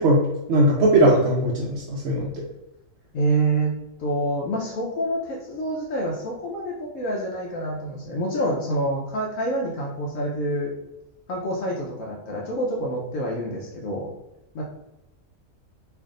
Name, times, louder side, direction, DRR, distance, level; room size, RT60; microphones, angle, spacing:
voice 1, 0.0-2.4, right 1 dB, 65° right, -3 dB, 0.8 m, -19 dB
voice 2, 3.1-3.7 4.0-10.7 11.3-14.1 14.5-14.6, right 1 dB, 70° left, -3 dB, 1.0 m, -27 dB
3.4 x 2.6 x 3.7 m, 0.92 s
omnidirectional pair, 1.4 m